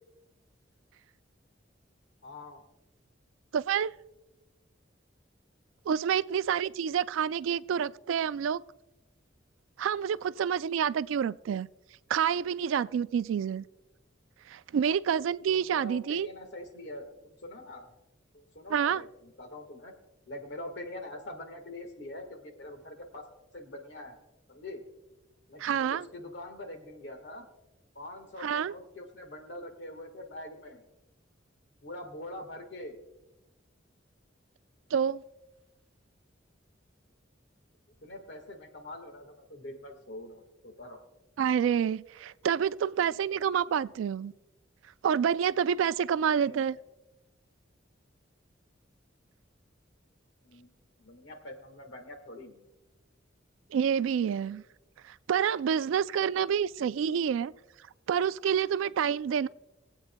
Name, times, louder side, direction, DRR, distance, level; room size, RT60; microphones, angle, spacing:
voice 1, 2.2-2.6 15.5-17.9 18.3-19.9 20.3-23.3 23.5-24.2 24.5-24.8 25.5-27.5 27.9-30.8 31.8-33.0 38.0-41.0 46.4-46.8 50.4-50.7 51.0-52.7, left 1 dB, 65° left, 1.6 m, -44 dB
voice 2, 3.5-3.9 5.9-8.6 9.8-11.7 12.1-13.6 14.5-16.3 18.7-19.0 25.6-26.1 28.4-28.7 34.9-35.2 41.4-44.3 45.0-46.8 53.7-54.6 55.0-57.5 58.1-59.5, right 8 dB, 85° right, 0.3 m, -28 dB
23.5 x 8.3 x 2.2 m
head